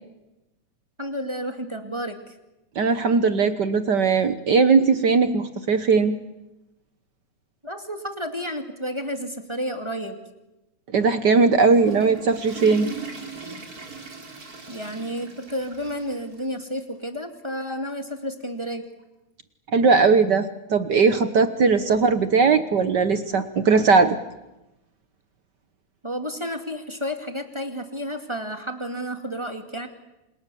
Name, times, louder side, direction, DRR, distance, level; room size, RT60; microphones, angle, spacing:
voice 1, 1.0-2.4 7.6-10.2 14.7-18.9 26.0-29.9, equal, 10° right, 5 dB, 1.8 m, -31 dB
voice 2, 2.7-6.2 10.9-12.9 19.7-24.1, right 4 dB, 65° right, 11 dB, 1.0 m, -19 dB
Water / Toilet flush, 11.5-16.5 16.8-16.9 17.6-17.7 19.0-19.1, right 4 dB, 30° right, 3.9 m, -39 dB
29.5 x 26.5 x 7.1 m, 0.97 s
omnidirectional pair, 3.4 m